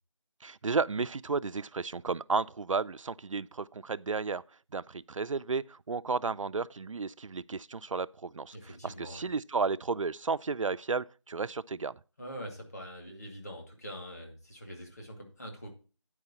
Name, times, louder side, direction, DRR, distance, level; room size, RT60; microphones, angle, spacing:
voice 1, 0.4-4.4 4.7-8.5 8.8-11.9, right 4 dB, 75° right, 0.4 m, -33 dB
voice 2, 8.5-9.3 12.2-15.7, equal, 30° left, 2.3 m, -44 dB
9.8 x 4.8 x 7.0 m
figure-of-eight pair, 180°, 16 cm